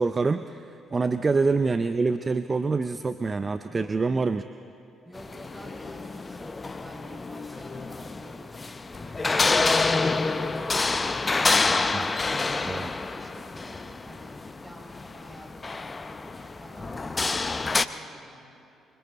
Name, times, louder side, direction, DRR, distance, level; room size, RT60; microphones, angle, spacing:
voice 1, 0.0-4.4 11.9-12.3 12.6-12.9, right 4 dB, 35° right, 11 dB, 0.6 m, -26 dB
voice 2, 3.7-4.1 5.0-18.4, equal, 10° right, -1 dB, 6.0 m, -49 dB
sound 1, 5.2-17.9, left 3 dB, 30° left, 0.7 m, -28 dB
25.0 x 24.5 x 4.2 m, 2.7 s
hypercardioid pair, 45°, 0 cm